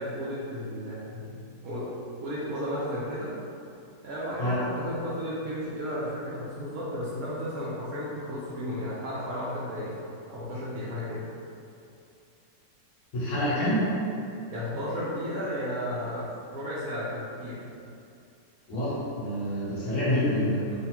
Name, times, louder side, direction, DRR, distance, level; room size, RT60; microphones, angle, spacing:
voice 1, 0.0-3.3 4.0-9.9 10.3-11.3 14.5-16.2 16.5-17.6, equal, 70° right, -8 dB, 0.8 m, -33 dB
voice 2, 13.1-13.9 18.7-20.6, left 1 dB, 65° left, -9 dB, 1.0 m, -27 dB
3.3 x 2.1 x 2.9 m, 2.5 s
omnidirectional pair, 2.0 m